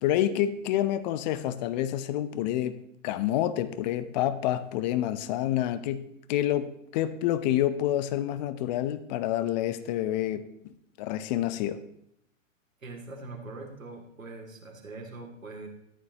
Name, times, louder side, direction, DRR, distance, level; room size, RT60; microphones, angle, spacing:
voice 1, 0.0-2.8 3.0-10.5 11.0-11.8, left 12 dB, 35° left, 13 dB, 0.7 m, -28 dB
voice 2, 12.8-15.7, right 3 dB, 90° right, 3 dB, 2.7 m, -42 dB
14.0 x 11.5 x 3.0 m, 0.72 s
hypercardioid pair, 120°, 39 cm